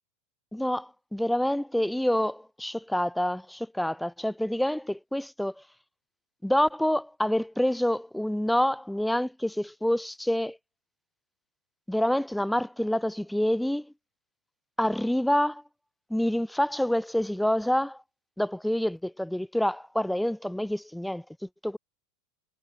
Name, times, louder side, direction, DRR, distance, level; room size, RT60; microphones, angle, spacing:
voice 1, 0.5-5.5 6.4-10.6 11.9-13.9 14.8-15.6 16.1-18.0 18.4-21.2 21.6-21.8, left 1 dB, ahead, 0.4 m, -27 dB
figure-of-eight pair, 80°, 0 cm